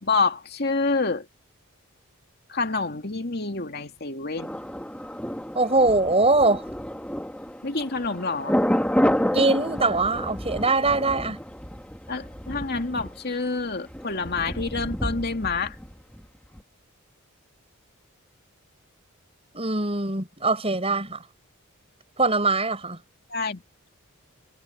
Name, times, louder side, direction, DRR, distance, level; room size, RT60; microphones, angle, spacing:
voice 1, 0.0-1.2 2.5-4.5 7.6-8.6 12.1-15.8 23.3-23.6, left 3 dB, 45° left, 2.6 m, -27 dB
Thunder, 4.4-16.2 16.5-16.6, equal, 5° left, 1.8 m, -29 dB
voice 2, 5.6-6.7 9.3-11.4 19.5-21.2 22.2-23.0, right 3 dB, 25° right, 7.0 m, -22 dB
head